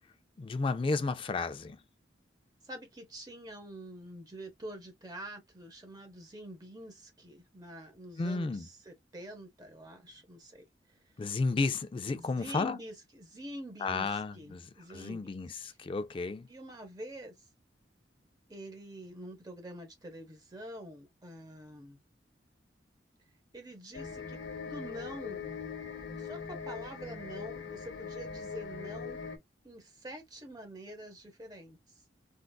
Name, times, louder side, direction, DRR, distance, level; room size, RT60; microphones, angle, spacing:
voice 1, 0.4-1.8 8.2-8.7 11.2-12.8 13.8-16.5, left 3 dB, 30° left, 0.3 m, -33 dB
voice 2, 2.6-10.6 12.1-15.3 15.6-15.8 16.5-17.3 18.5-22.0 23.5-25.5 26.2-29.2 29.6-31.8, right 1 dB, 20° right, 0.7 m, -46 dB
sound 1, 23.9-29.4, left 5 dB, 90° left, 0.8 m, -41 dB
3.7 x 2.3 x 2.3 m
head